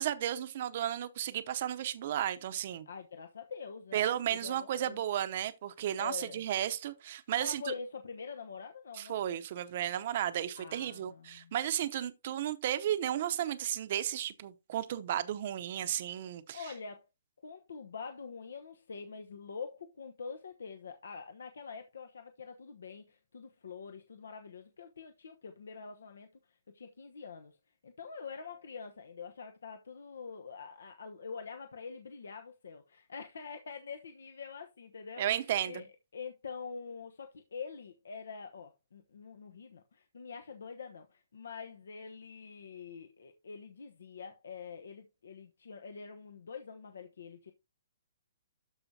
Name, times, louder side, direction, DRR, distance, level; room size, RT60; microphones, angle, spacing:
voice 1, 0.0-2.9 3.9-7.6 8.9-16.7 35.2-35.8, right 11 dB, 40° right, 0.7 m, -34 dB
voice 2, 2.9-5.0 6.0-6.4 7.4-9.2 10.5-11.5 16.5-17.1 17.4-27.6 27.8-47.5, left 5 dB, 80° left, 1.0 m, -45 dB
13.0 x 4.9 x 2.8 m
hypercardioid pair, 165°, 0 cm